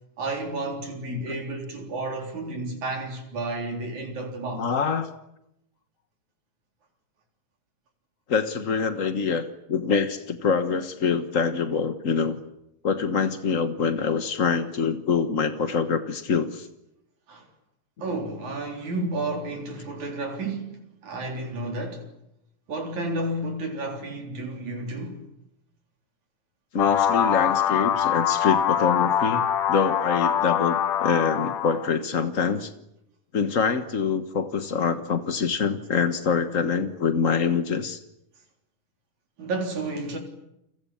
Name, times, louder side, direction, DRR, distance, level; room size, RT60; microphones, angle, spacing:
voice 1, 0.2-4.7 17.3-17.5 18.0-22.1 22.7-25.2 39.4-40.2, right 2 dB, 65° right, 5.1 m, -31 dB
voice 2, 4.5-5.1 8.3-12.4 12.8-16.7 26.7-32.7 33.3-38.0, left 5 dB, 70° left, 0.7 m, -25 dB
sound 1, 26.8-31.9, left 9 dB, 90° left, 2.9 m, -23 dB
30.0 x 22.0 x 8.7 m
omnidirectional pair, 3.5 m